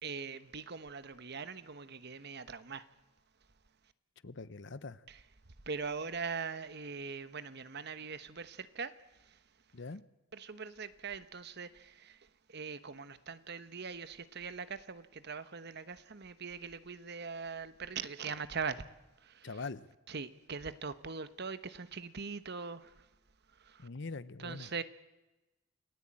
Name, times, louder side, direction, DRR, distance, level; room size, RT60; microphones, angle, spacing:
voice 1, 0.0-2.8 5.1-5.2 5.7-8.9 10.3-12.2 12.5-18.8 19.2-19.5 20.1-22.9 23.7-23.9 24.4-24.8, right 5 dB, 55° right, 1.1 m, -41 dB
voice 2, 4.2-5.0 9.7-10.0 19.4-19.9 23.8-24.7, left 3 dB, 60° left, 0.9 m, -43 dB
28.5 x 17.0 x 8.8 m
head